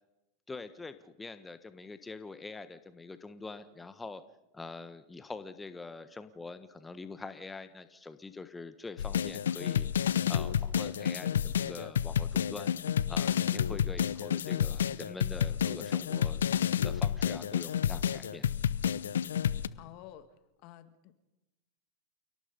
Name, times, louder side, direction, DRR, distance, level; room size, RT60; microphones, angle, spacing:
voice 1, 0.5-4.2 4.5-12.7 13.1-16.4 16.8-18.5, left 3 dB, 15° left, 11 dB, 1.3 m, -44 dB
sound 1, 9.0-19.7, left 9 dB, 80° left, 0.8 m, -30 dB
voice 2, 19.8-20.3 20.6-21.1, left 13 dB, 50° left, 11 dB, 2.0 m, -50 dB
29.0 x 18.0 x 5.4 m, 0.98 s
hypercardioid pair, 95°, 0 cm